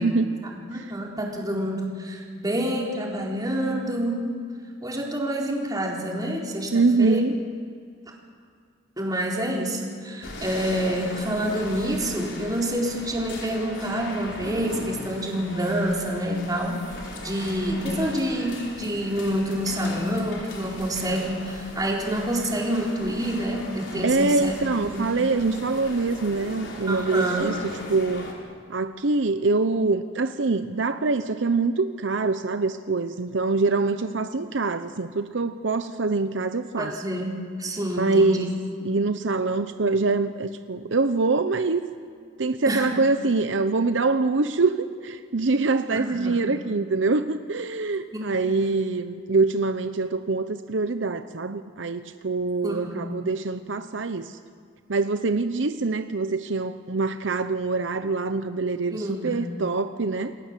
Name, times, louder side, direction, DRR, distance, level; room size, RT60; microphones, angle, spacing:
voice 1, 0.4-4.3 4.8-7.2 9.0-16.8 17.2-24.5 24.9-25.1 26.9-27.5 36.8-38.4 42.7-42.9 45.9-46.4 48.1-48.7 52.6-53.1 58.9-59.4, equal, 20° right, -1 dB, 4.2 m, -27 dB
voice 2, 6.7-7.3 24.0-27.5 27.9-28.3 28.7-36.9 38.0-38.5 38.8-41.8 42.4-54.4 54.9-60.3, right 3 dB, 75° right, 10 dB, 0.8 m, -24 dB
sound 1, 10.2-28.3, left 2 dB, 75° left, 4.6 m, -39 dB
28.5 x 20.0 x 7.5 m, 2.2 s
head